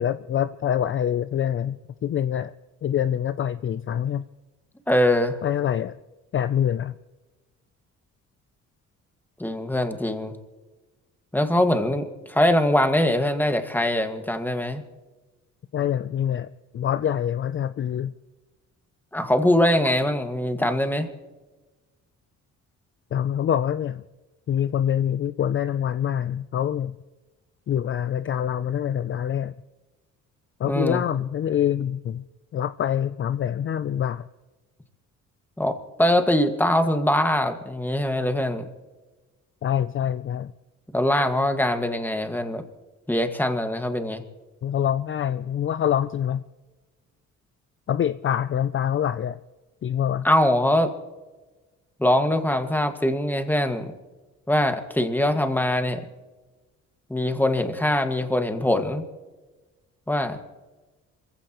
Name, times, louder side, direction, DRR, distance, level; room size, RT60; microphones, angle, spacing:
voice 1, 0.0-2.5 2.8-4.2 5.4-6.0 6.3-7.0 15.7-16.5 16.7-18.1 23.1-24.0 24.5-27.0 27.7-29.5 30.6-32.2 32.5-34.2 39.6-40.5 44.6-46.4 47.9-49.4 49.8-50.3, left 9 dB, 40° left, 13 dB, 0.5 m, -25 dB
voice 2, 4.9-5.4 9.4-10.3 11.3-14.8 19.1-21.1 30.7-31.0 35.6-38.6 40.9-42.6 43.1-44.2 50.2-50.9 52.0-53.9 54.5-56.0 57.1-59.0 60.1-60.4, left 1 dB, 5° left, 6 dB, 1.8 m, -22 dB
27.0 x 15.5 x 3.1 m, 1.2 s
cardioid pair, 90°, 30 cm